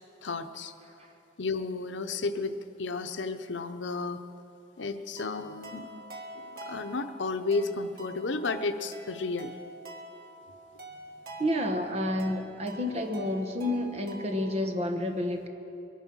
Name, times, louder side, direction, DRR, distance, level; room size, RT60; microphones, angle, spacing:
voice 1, 0.2-0.7 1.4-4.2 4.8-5.9 6.4-9.5, left 3 dB, 90° left, 9 dB, 0.8 m, -32 dB
sound 1, 5.2-14.5, right 1 dB, 55° right, 1.7 m, -46 dB
voice 2, 11.4-15.5, left 1 dB, 35° right, 5 dB, 1.1 m, -30 dB
21.5 x 9.4 x 6.2 m, 2.9 s
head